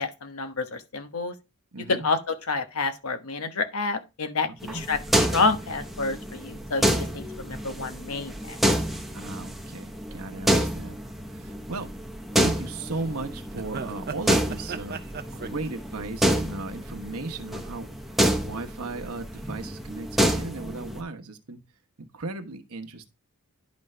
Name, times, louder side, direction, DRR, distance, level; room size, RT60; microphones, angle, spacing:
voice 1, 0.0-1.3 1.9-8.6, left 3 dB, 75° left, 1.1 m, -29 dB
voice 2, 1.7-2.1 4.5-4.8 9.1-11.0 11.3-11.9 12.3-15.0 15.3-18.2 18.4-21.6 22.0-23.1, right 3 dB, 80° right, 1.1 m, -36 dB
sound 1, 4.6-21.0, equal, ahead, 0.9 m, -28 dB
sound 2, 12.6-12.7 12.9-13.0 13.6-17.2 17.5-17.9 18.6-19.1 19.4-19.5, right 5 dB, 45° right, 0.7 m, -37 dB
10.5 x 5.2 x 3.3 m
head